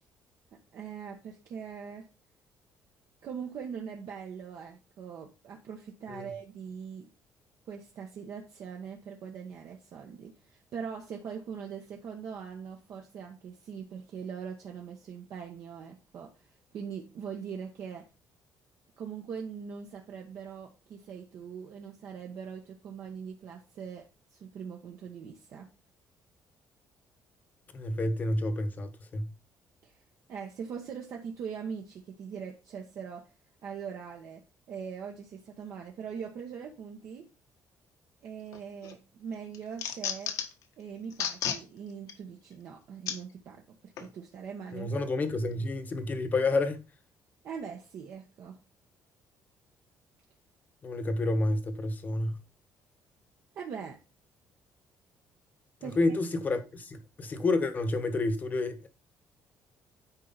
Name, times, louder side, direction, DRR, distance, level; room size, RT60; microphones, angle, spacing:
voice 1, 0.7-2.1 3.2-7.1 7.7-16.3 16.7-18.1 19.0-24.0 24.3-25.7 29.8-30.0 30.3-33.3 33.6-37.3 38.2-40.3 40.8-44.9 47.4-48.6 53.5-54.0 55.8-56.0, right 7 dB, 55° right, 1.3 m, -41 dB
voice 2, 27.7-29.3 44.7-46.8 50.8-52.4 56.0-58.9, left 2 dB, 30° left, 1.1 m, -29 dB
sound 1, 38.5-38.9 39.3-40.6 41.1-41.6 42.1-42.2 43.1-43.2 44.0-44.1, left 8 dB, 75° left, 1.4 m, -33 dB
9.6 x 4.7 x 4.1 m
cardioid pair, 160°, 6 cm